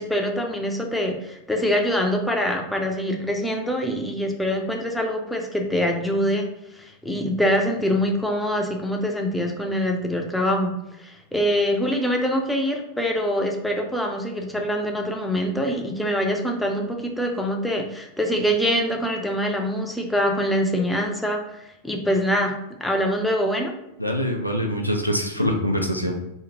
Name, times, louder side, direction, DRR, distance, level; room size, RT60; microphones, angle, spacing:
voice 1, 0.0-6.5 6.8-10.7 11.0-22.6 22.8-23.7, equal, 5° left, 2 dB, 0.4 m, -24 dB
voice 2, 24.0-26.2, equal, 90° left, 2 dB, 0.4 m, -24 dB
2.8 x 2.4 x 2.7 m, 0.85 s
figure-of-eight pair, 90°, 0 cm